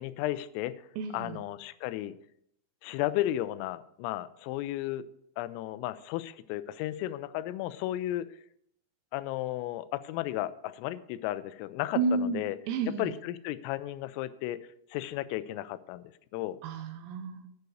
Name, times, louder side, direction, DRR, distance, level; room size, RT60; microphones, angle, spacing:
voice 1, 0.0-0.9 1.1-2.1 2.8-5.1 5.4-8.3 9.1-12.6 13.0-16.6, left 14 dB, 90° left, 15 dB, 3.2 m, -34 dB
voice 2, 1.0-1.4 12.0-13.1 16.6-17.5, right 4 dB, 90° right, 8 dB, 3.7 m, -31 dB
9.5 x 6.9 x 6.4 m, 0.71 s
omnidirectional pair, 5.9 m